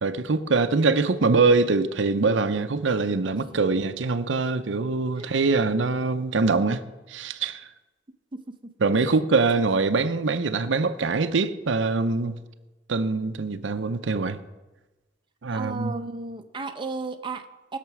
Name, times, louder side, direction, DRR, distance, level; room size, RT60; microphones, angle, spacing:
voice 1, 0.0-6.8 7.1-7.7 8.8-12.4 12.9-14.4 15.4-15.9, right 3 dB, 85° right, 0.7 m, -23 dB
voice 2, 3.4-3.8 5.2-5.3 8.3-8.7 9.0-9.1 9.5-9.6 15.5-17.8, right 3 dB, 25° right, 0.7 m, -35 dB
19.0 x 6.7 x 6.1 m
head